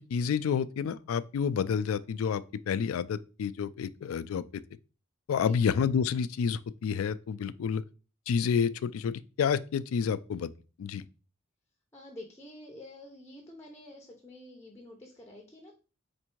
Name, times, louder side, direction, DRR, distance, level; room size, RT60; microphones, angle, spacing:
voice 1, 0.0-4.4 5.3-7.8 8.3-10.5 10.8-11.0, left 6 dB, 90° left, 0.3 m, -29 dB
voice 2, 11.9-15.8, left 1 dB, 15° left, 0.7 m, -48 dB
4.5 x 2.6 x 4.4 m
head